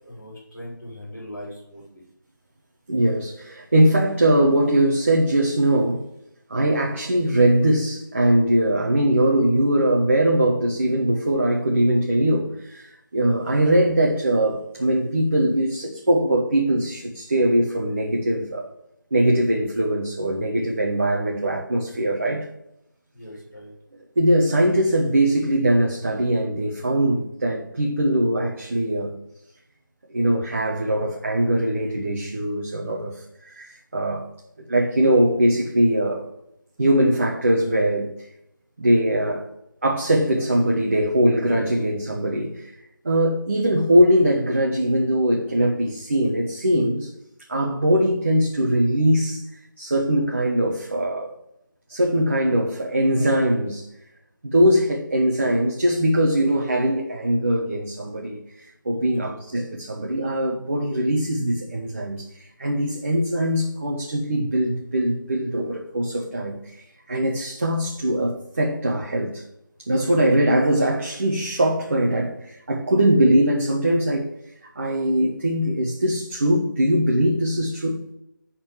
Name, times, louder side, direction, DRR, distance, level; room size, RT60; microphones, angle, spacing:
voice 1, 0.0-2.1 23.1-23.7 59.0-59.4, left 1 dB, 10° left, -14 dB, 4.1 m, -40 dB
voice 2, 2.9-6.0 6.5-18.7 19.1-22.5 24.2-29.1 30.1-34.3 34.7-36.2 36.8-38.1 38.8-39.4 39.8-42.7 43.0-47.1 47.5-49.4 49.8-51.3 51.9-53.9 54.4-69.4 69.8-74.3 74.7-78.0, right 1 dB, 35° right, -2 dB, 1.3 m, -21 dB
10.5 x 4.3 x 7.1 m, 0.81 s
figure-of-eight pair, 175°, 11 cm